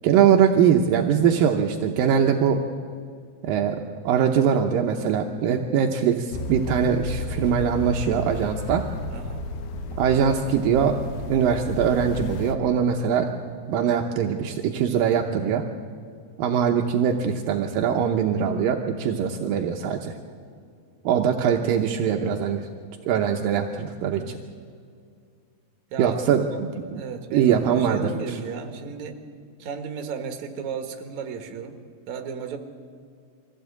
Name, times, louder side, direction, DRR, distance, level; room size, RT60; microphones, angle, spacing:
voice 1, 0.0-2.6 3.4-3.8 4.0-8.9 10.0-11.0 11.3-13.3 13.7-15.6 16.4-20.2 21.0-22.7 23.1-24.2 26.0-27.0 27.3-28.4, right 8 dB, 80° right, 3 dB, 2.1 m, -22 dB
sound 1, 6.3-12.5, left 2 dB, 80° left, 3.5 m, -33 dB
voice 2, 9.1-9.4 24.1-24.4 25.9-26.6 26.9-29.2 29.6-31.8 32.1-32.6, right 6 dB, 60° right, 6 dB, 2.2 m, -34 dB
23.5 x 16.0 x 8.5 m, 2.2 s
omnidirectional pair, 5.2 m